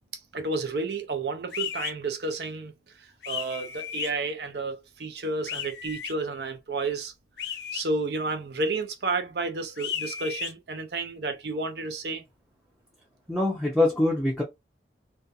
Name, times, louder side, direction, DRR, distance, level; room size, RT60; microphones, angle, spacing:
voice 1, 0.3-2.7 3.0-7.1 7.7-12.2, right 3 dB, 70° right, 0.6 m, -31 dB
sound 1, 1.5-1.9 3.2-4.1 5.5-6.1 7.4-7.9 9.8-10.5, left 9 dB, 75° left, 0.4 m, -34 dB
voice 2, 13.3-14.4, left 2 dB, ahead, 0.5 m, -24 dB
2.4 x 2.3 x 2.6 m
head